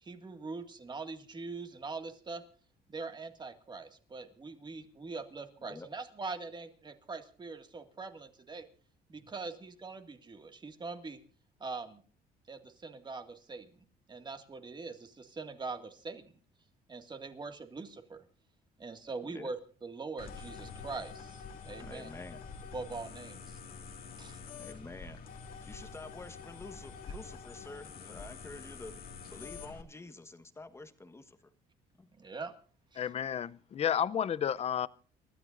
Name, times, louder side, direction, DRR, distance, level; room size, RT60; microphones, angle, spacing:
voice 1, 0.0-2.4 2.9-8.7 9.1-11.2 11.6-12.0 12.5-16.3 16.9-18.2 18.8-22.1 22.7-23.6 24.2-24.4 32.1-32.5 32.9-33.1, right 4 dB, 25° right, 2.0 m, -43 dB
sound 1, 20.2-29.8, left 5 dB, 60° left, 2.2 m, -47 dB
voice 2, 21.8-22.4 24.5-28.9 29.2-31.4 32.0-32.1, left 2 dB, 15° left, 1.4 m, -48 dB
voice 3, 33.0-34.9, left 9 dB, 40° left, 0.6 m, -31 dB
29.5 x 13.0 x 2.6 m
cardioid pair, 110°, 17 cm